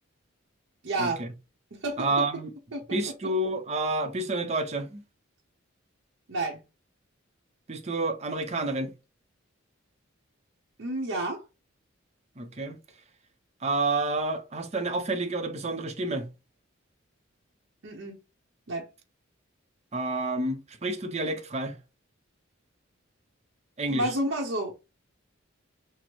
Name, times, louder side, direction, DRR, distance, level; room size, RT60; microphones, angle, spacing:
voice 1, 0.8-1.2 1.8-2.1 2.7-2.8 6.3-6.6 10.8-11.4 17.8-18.1 18.7-18.9 23.9-24.7, right 1 dB, 70° right, 0.9 m, -30 dB
voice 2, 2.0-2.5 2.9-5.0 7.7-8.9 12.4-12.8 13.6-16.3 19.9-21.8 23.8-24.1, right 2 dB, 30° right, 0.6 m, -29 dB
6.1 x 2.1 x 3.0 m
head